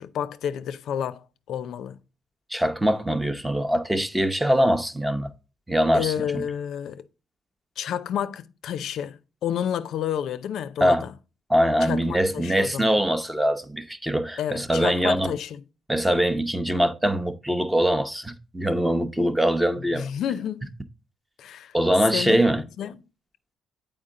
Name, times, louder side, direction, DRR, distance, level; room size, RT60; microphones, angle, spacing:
voice 1, 0.0-2.0 5.9-7.0 7.8-11.1 11.8-12.9 14.4-15.6 19.9-20.7 21.4-21.7 22.1-23.0, left 9 dB, 75° left, 0.4 m, -30 dB
voice 2, 2.5-5.3 5.7-6.4 10.8-11.1 11.5-15.3 15.9-20.1 21.7-22.6, equal, 10° right, 0.7 m, -23 dB
7.8 x 4.5 x 3.7 m
cardioid pair, 90°, 0 cm